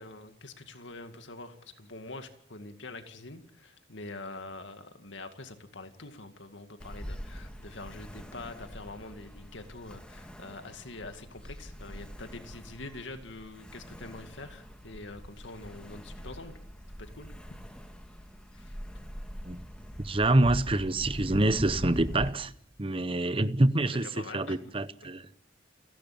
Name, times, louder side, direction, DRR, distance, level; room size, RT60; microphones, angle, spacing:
voice 1, 0.0-16.6 17.0-17.3 18.5-18.8 24.0-24.7, left 2 dB, 70° left, 2.2 m, -45 dB
Ocean, 6.8-22.3, equal, 5° left, 1.9 m, -43 dB
voice 2, 20.0-22.5 22.8-25.3, right 2 dB, 30° right, 0.9 m, -26 dB
29.5 x 12.0 x 8.7 m
head